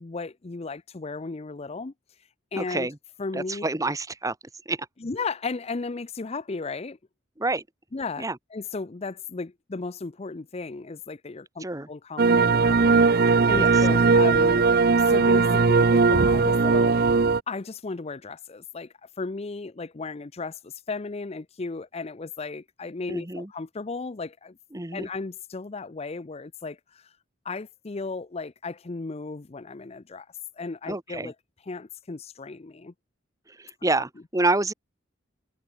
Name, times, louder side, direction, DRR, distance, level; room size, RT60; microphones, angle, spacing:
voice 1, 0.0-1.9 2.5-2.9 3.2-3.6 5.0-7.0 7.9-17.2 17.5-24.6 24.9-27.1 27.4-30.3 30.6-31.3 31.7-32.9, left 3 dB, 30° left, 0.5 m, -35 dB
voice 2, 2.6-3.0 3.3-4.4 4.6-4.9 7.4-7.6 8.2-8.4 11.6-11.9 13.5-13.7 23.1-23.5 24.7-25.1 30.9-31.3 33.5-34.7, right 2 dB, 15° right, 1.3 m, -28 dB
sound 1, 12.2-17.4, right 4 dB, 50° right, 0.6 m, -19 dB
head